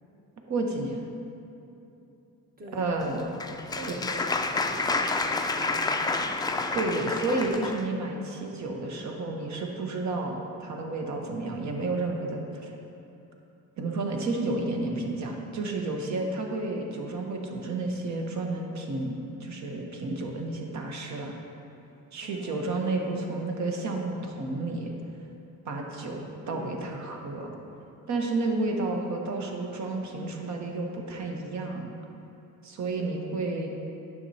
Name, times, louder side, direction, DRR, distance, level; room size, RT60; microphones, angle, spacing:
voice 1, 0.5-1.0 2.7-3.2 6.7-12.7 13.8-21.4 22.1-24.9 25.7-27.5 28.1-31.9 32.6-33.7, right 2 dB, 55° right, 2 dB, 1.1 m, -31 dB
voice 2, 2.6-3.2 3.7-4.3 4.7-6.6 22.3-22.7 23.1-23.6 26.5-26.8 28.8-29.1 33.0-33.4, right 1 dB, 25° right, 0 dB, 1.0 m, -44 dB
Applause, 3.0-7.8, left 3 dB, 15° left, 0.3 m, -29 dB
9.8 x 6.6 x 2.8 m, 2.9 s
cardioid pair, 90°, 33 cm